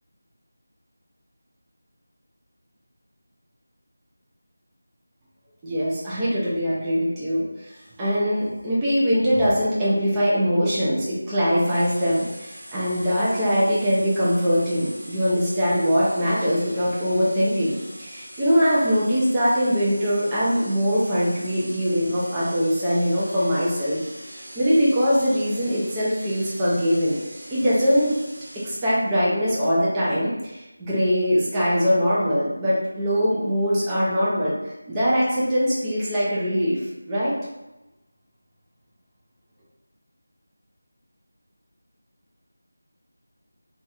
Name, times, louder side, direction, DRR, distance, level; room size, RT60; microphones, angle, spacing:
voice 1, 5.6-7.7 8.0-24.0 24.3-27.2 27.5-28.1 28.5-34.5 34.9-36.8 37.1-37.3, equal, 10° right, -9 dB, 0.4 m, -22 dB
sound 1, 11.6-29.1, right 1 dB, 40° right, 0.9 m, -42 dB
3.0 x 2.3 x 2.8 m, 1.0 s
figure-of-eight pair, 175°, 0 cm